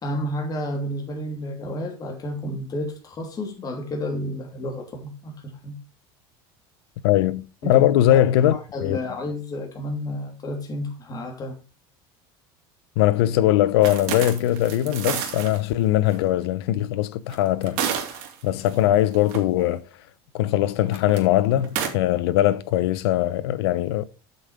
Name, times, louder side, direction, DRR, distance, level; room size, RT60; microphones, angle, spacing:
voice 1, 0.0-5.8 7.6-8.3 8.5-11.6, left 1 dB, 30° left, 3.1 m, -31 dB
voice 2, 7.0-9.0 13.0-18.1 18.4-19.8 20.3-24.0, left 13 dB, 85° left, 0.8 m, -21 dB
sound 1, 13.8-15.6 16.1-16.2 17.3-18.8 19.1-19.4 20.9-21.2 21.6-21.9, right 9 dB, 70° right, 2.9 m, -29 dB
8.1 x 7.1 x 5.0 m
supercardioid pair, 130°, 13 cm